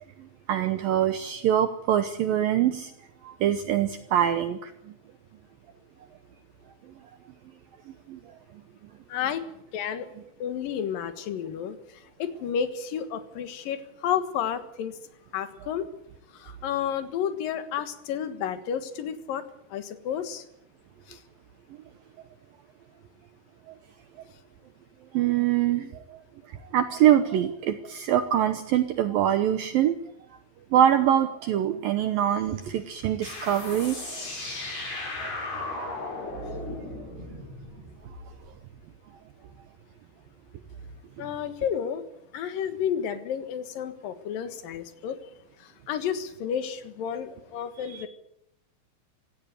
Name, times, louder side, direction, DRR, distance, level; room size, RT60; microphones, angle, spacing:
voice 1, 0.5-2.9 3.2-4.7 8.1-8.2 25.1-26.2 26.7-30.0 30.7-34.2 35.2-35.3 47.8-48.0, right 10 dB, 75° right, 9 dB, 2.2 m, -24 dB
voice 2, 9.1-9.4 9.7-10.1 10.4-11.8 12.2-14.9 15.3-15.9 16.4-19.4 19.7-20.4 21.1-21.2 41.2-42.0 42.3-45.2 45.9-48.1, left 8 dB, 60° left, 10 dB, 2.8 m, -31 dB
sound 1, 33.2-38.5, left 2 dB, 45° left, 8.1 m, -36 dB
17.5 x 15.5 x 9.7 m, 0.76 s
omnidirectional pair, 5.3 m